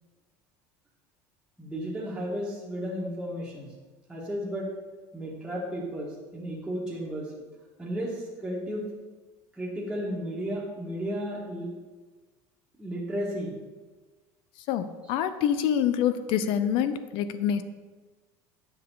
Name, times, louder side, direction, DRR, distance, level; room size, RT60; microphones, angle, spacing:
voice 1, 1.6-3.7 4.1-4.7 5.1-7.3 7.8-8.9 9.5-11.7 12.8-13.5, equal, 5° right, -6 dB, 1.7 m, -33 dB
voice 2, 14.7-17.6, left 9 dB, 60° left, 12 dB, 0.5 m, -26 dB
8.8 x 5.6 x 4.0 m, 1.3 s
cardioid pair, 140°, 10 cm